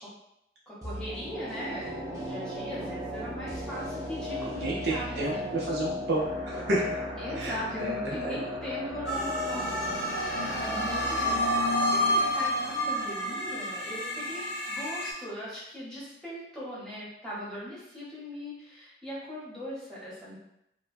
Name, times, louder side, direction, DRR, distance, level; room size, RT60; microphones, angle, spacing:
voice 1, 0.7-5.5 7.2-9.7 10.0-20.4, equal, 5° left, -10 dB, 0.9 m, -39 dB
sound 1, 0.8-13.9 14.2-14.3, left 1 dB, 20° right, 0.5 m, -37 dB
voice 2, 4.4-7.0 7.4-8.4 10.4-10.6, right 2 dB, 70° right, -5 dB, 0.5 m, -31 dB
sound 2, 9.1-15.1, equal, 60° left, 0.5 m, -29 dB
2.8 x 2.2 x 2.5 m, 0.81 s
head